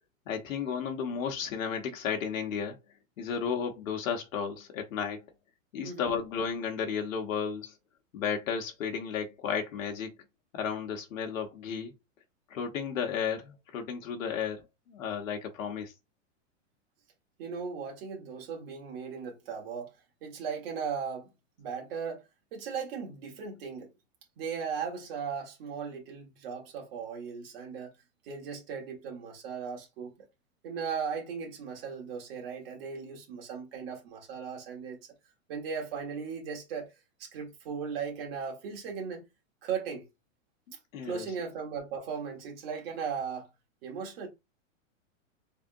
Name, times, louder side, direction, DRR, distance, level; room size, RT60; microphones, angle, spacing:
voice 1, 0.3-2.8 3.2-5.2 5.7-7.7 8.1-10.1 10.5-11.9 12.5-15.9 40.9-41.3, left 7 dB, 80° left, 1.1 m, -33 dB
voice 2, 17.4-19.9 20.2-21.3 21.6-22.2 22.5-23.9 24.4-27.9 28.2-30.1 30.6-35.0 35.5-36.9 37.2-39.3 39.6-40.1 41.0-43.5 43.8-44.3, right 6 dB, 45° right, 1.6 m, -37 dB
3.5 x 3.5 x 2.6 m
supercardioid pair, 160°, 39 cm